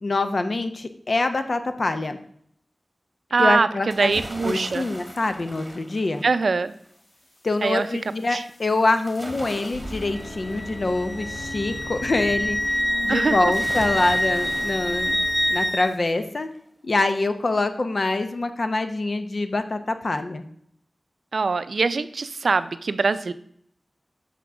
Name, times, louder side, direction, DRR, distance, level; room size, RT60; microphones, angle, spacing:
voice 1, 0.0-2.2 3.4-4.1 4.4-6.2 7.4-15.2 15.5-16.5 16.8-20.4, left 2 dB, 65° left, 8 dB, 0.8 m, -25 dB
voice 2, 3.3-4.9 6.2-6.7 7.6-7.9 8.3-8.4 13.1-13.5 21.3-23.3, right 4 dB, 85° right, 13 dB, 0.4 m, -23 dB
sound 1, 3.9-6.7 9.1-11.7 13.5-15.8 16.2-16.3, right 1 dB, 15° right, 1.3 m, -40 dB
sound 2, 7.3-16.0, left 1 dB, 85° left, 2.3 m, -39 dB
Wind instrument woodwind instrument, 10.1-15.9, equal, 15° left, 0.4 m, -26 dB
6.0 x 5.9 x 6.0 m, 0.66 s
wide cardioid pair, 55°, 0 cm